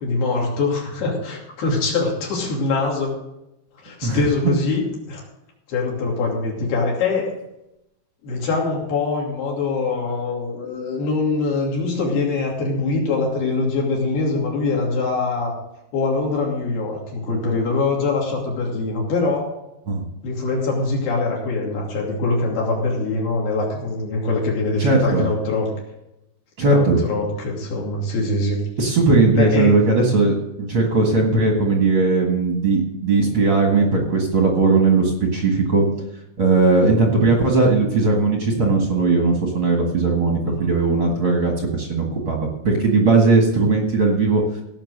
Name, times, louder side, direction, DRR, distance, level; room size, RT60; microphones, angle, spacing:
voice 1, 0.0-3.1 3.8-5.2 5.7-7.3 8.2-15.5 15.9-19.5 20.2-25.7 26.6-28.6 29.3-29.8 40.4-40.7, left 3 dB, 65° left, -2 dB, 4.6 m, -23 dB
voice 2, 24.8-25.2 26.6-27.0 28.8-35.8 36.4-42.4 42.6-44.4, right 3 dB, 55° right, 0 dB, 1.4 m, -18 dB
17.0 x 6.0 x 6.6 m, 0.88 s
omnidirectional pair, 5.1 m